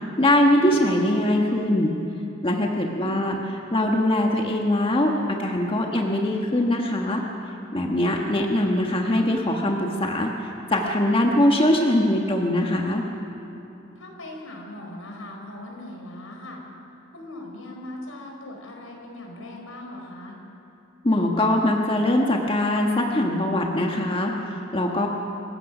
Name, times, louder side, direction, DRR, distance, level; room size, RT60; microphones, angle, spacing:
voice 1, 0.2-1.9 2.4-3.4 3.7-7.2 7.7-10.3 10.7-13.0 21.0-25.1, left 1 dB, 25° left, 1 dB, 1.4 m, -22 dB
voice 2, 2.7-3.2 13.9-16.6 17.1-20.4, left 1 dB, 85° left, 1 dB, 4.6 m, -39 dB
27.5 x 15.5 x 6.1 m, 2.9 s
head